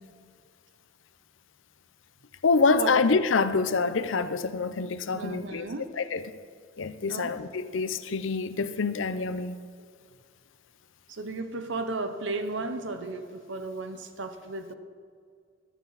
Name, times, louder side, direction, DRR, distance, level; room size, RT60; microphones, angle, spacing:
voice 1, 2.4-5.6 6.0-6.2 6.8-9.6, left 4 dB, 75° left, 12 dB, 0.6 m, -26 dB
voice 2, 5.1-5.9 7.1-7.3 11.1-14.7, right 3 dB, 65° right, 9 dB, 0.8 m, -34 dB
14.0 x 12.0 x 4.1 m, 2.2 s
head